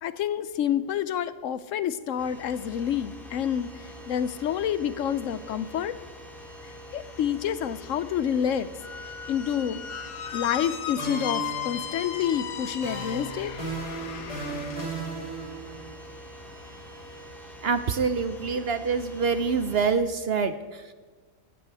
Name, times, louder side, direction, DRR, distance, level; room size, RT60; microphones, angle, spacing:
voice 1, 0.0-5.9 6.6-8.7 9.3-9.8 10.3-13.5, left 9 dB, 70° left, 14 dB, 0.9 m, -28 dB
sound 1, 2.2-20.0, equal, ahead, 2.8 m, -45 dB
Squeak, 8.8-14.9, left 9 dB, 85° left, 1.3 m, -36 dB
sound 2, 10.3-10.7 11.0-12.4 12.8-16.0, right 4 dB, 30° right, 4.8 m, -36 dB
voice 2, 17.6-20.9, right 5 dB, 55° right, 10 dB, 0.7 m, -26 dB
16.5 x 13.0 x 3.5 m, 1.4 s
omnidirectional pair, 1.5 m